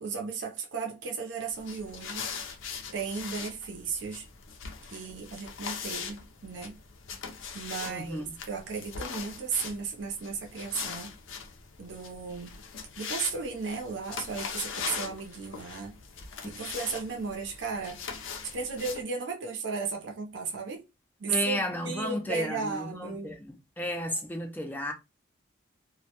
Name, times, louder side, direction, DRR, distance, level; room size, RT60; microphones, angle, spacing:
voice 1, 0.0-2.3 2.9-4.3 4.9-6.8 7.5-11.1 11.8-12.5 13.0-16.0 16.4-18.2 18.5-20.8 21.2-23.3, right 5 dB, 65° right, 0.5 m, -35 dB
sound 1, 1.5-19.0, left 6 dB, 75° left, 0.5 m, -41 dB
voice 2, 7.9-8.3 21.3-24.9, left 1 dB, 10° left, 0.3 m, -33 dB
2.1 x 2.1 x 2.8 m
head